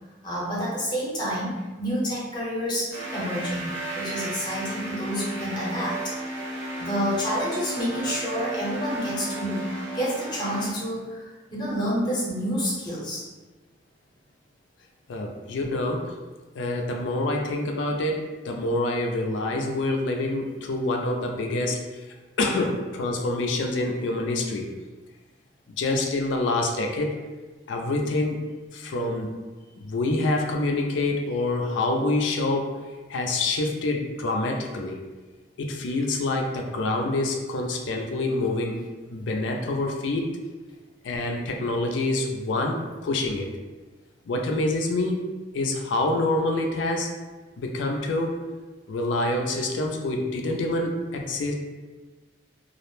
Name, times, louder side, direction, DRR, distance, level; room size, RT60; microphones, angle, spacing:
voice 1, 0.2-1.5 1.8-6.1 6.8-9.6 9.9-13.2, equal, 25° left, -6 dB, 0.7 m, -29 dB
sound 1, 2.9-10.7, right 2 dB, 75° right, 0.8 m, -34 dB
voice 2, 15.1-16.1 16.5-21.8 22.4-24.7 25.8-27.1 27.7-28.4 28.7-29.3 29.8-32.8 33.1-35.0 35.6-38.8 39.1-40.4 41.0-43.5 44.3-45.2 45.5-47.1 47.6-48.4 48.9-51.5, left 2 dB, 80° left, 2 dB, 0.4 m, -26 dB
2.4 x 2.0 x 3.0 m, 1.2 s
head